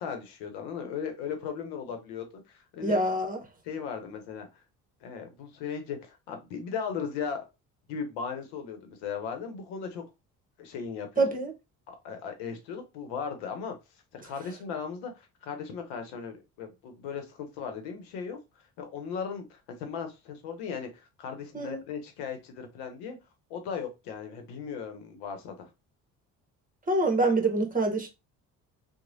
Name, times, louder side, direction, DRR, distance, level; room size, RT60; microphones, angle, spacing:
voice 1, 0.0-3.0 3.6-4.5 5.0-7.5 7.9-10.0 10.6-11.3 11.9-13.7 14.1-18.4 18.8-23.2 23.5-25.7, left 6 dB, 80° left, 0.9 m, -37 dB
voice 2, 2.8-3.4 11.2-11.5 21.5-21.8 26.9-28.1, right 2 dB, 20° right, 1.1 m, -25 dB
3.0 x 2.2 x 2.6 m
hypercardioid pair, 60°, 42 cm